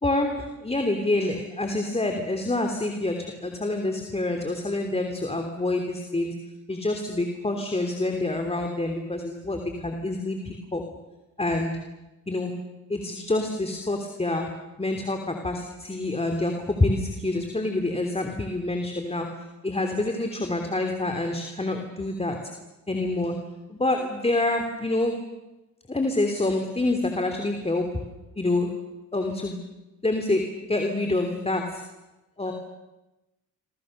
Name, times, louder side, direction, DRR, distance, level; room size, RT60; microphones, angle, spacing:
voice 1, 0.0-6.3 6.7-10.8 11.4-11.7 12.3-12.5 12.9-14.5 14.8-19.3 19.6-22.4 22.9-23.3 23.7-25.1 25.9-27.9 28.4-28.7 29.1-29.6 30.0-31.8 32.4-32.5, left 2 dB, 20° left, 4 dB, 3.2 m, -27 dB
28.5 x 24.5 x 6.8 m, 1.0 s
cardioid pair, 80°, 30 cm